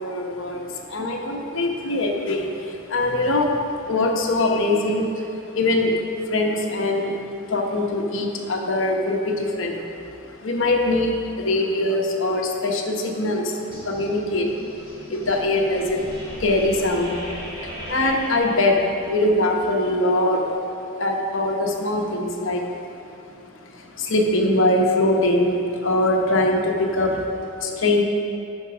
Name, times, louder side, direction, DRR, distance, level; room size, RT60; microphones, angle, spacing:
voice 1, 0.0-6.0 6.3-14.5 14.8-20.6 20.9-22.7 22.9-23.1 23.6-28.0, left 2 dB, 60° left, 1 dB, 1.0 m, -23 dB
sound 1, 13.7-19.3, equal, 25° right, 1.9 m, -38 dB
9.8 x 4.7 x 6.0 m, 2.7 s
head